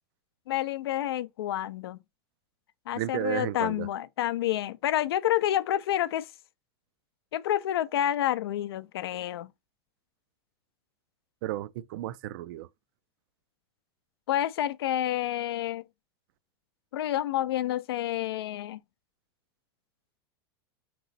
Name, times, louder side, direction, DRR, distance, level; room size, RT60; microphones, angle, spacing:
voice 1, 0.5-2.0 2.9-6.3 7.3-9.5 14.3-15.8 16.9-18.8, left 12 dB, 90° left, 0.4 m, -29 dB
voice 2, 2.9-3.9 11.4-12.7, right 15 dB, 65° right, 0.4 m, -33 dB
3.9 x 3.0 x 4.0 m
supercardioid pair, 125°, 13 cm